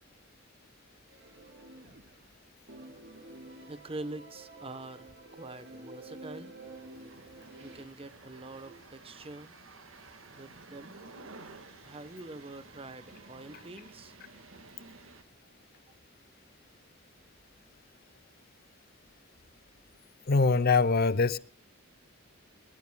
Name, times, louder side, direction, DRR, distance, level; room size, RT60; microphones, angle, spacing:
sound 1, 1.1-2.4 2.7-7.8, right 2 dB, 60° right, 3.3 m, -49 dB
voice 1, 3.7-6.5 7.6-9.5 10.4-11.0 11.8-14.2, right 2 dB, 30° right, 1.0 m, -45 dB
sound 2, 6.6-15.2, right 3 dB, 80° right, 1.7 m, -53 dB
voice 2, 20.3-21.4, left 4 dB, 50° left, 0.6 m, -23 dB
21.0 x 20.5 x 2.3 m
head